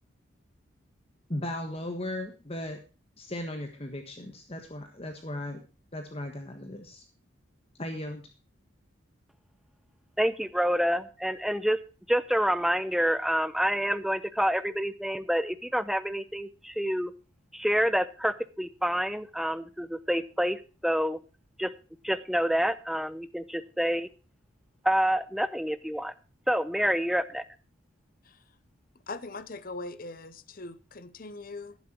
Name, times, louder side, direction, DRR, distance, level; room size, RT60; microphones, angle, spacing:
voice 1, 1.3-2.8 3.2-5.6 5.9-7.0 7.8-8.2, left 1 dB, 30° left, 1.5 m, -36 dB
voice 2, 10.2-11.8 12.1-17.1 17.5-21.2 21.6-21.7 22.0-24.1 24.8-26.1 26.5-27.4, equal, ahead, 0.7 m, -27 dB
voice 3, 29.1-31.8, left 3 dB, 45° left, 0.8 m, -41 dB
11.5 x 11.0 x 4.4 m
head